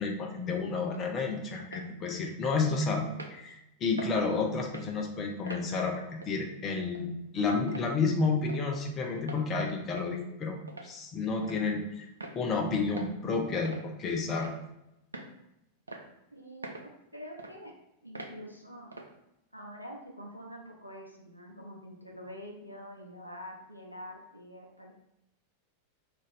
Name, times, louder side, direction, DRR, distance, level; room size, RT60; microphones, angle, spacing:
voice 1, 0.0-3.0 3.3-10.6 10.8-12.1 12.3-14.5, left 4 dB, 30° left, 2 dB, 0.5 m, -31 dB
sound 1, 0.9-1.1 1.6-1.9 2.5-2.6 3.1-3.4 4.0-4.2 4.6-4.9 5.5-5.7 6.2-6.4 6.9-7.0 7.7-7.9 8.5-8.6 9.2-9.4 10.0-10.2 10.7-10.9 11.4-11.6 12.2-12.4 13.0-13.1 13.6-13.9 14.4-14.7 15.1-15.3 15.9-16.0 16.6-16.9 17.4-17.5 18.1-18.3 18.9-19.1, right 2 dB, 80° right, 0.4 m, -43 dB
voice 2, 16.3-17.7 18.0-18.9 19.5-24.9, equal, 90° left, 0 dB, 0.5 m, -46 dB
2.5 x 2.5 x 3.2 m, 0.87 s
figure-of-eight pair, 90°, 0 cm